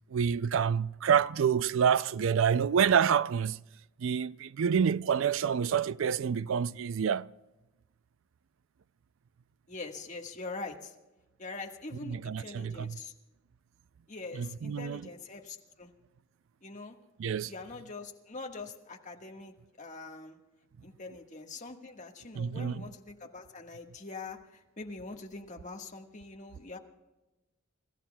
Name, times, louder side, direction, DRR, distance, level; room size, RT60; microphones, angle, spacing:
voice 1, 0.1-3.6 4.0-7.3 12.1-13.0 14.3-15.0 17.2-17.5 22.3-22.9, right 7 dB, 65° right, 0.4 m, -28 dB
voice 2, 9.7-10.9 11.4-13.1 14.1-15.9 16.6-17.0 17.4-20.4 20.8-26.8, left 3 dB, 35° left, 1.5 m, -43 dB
30.0 x 15.0 x 2.3 m
head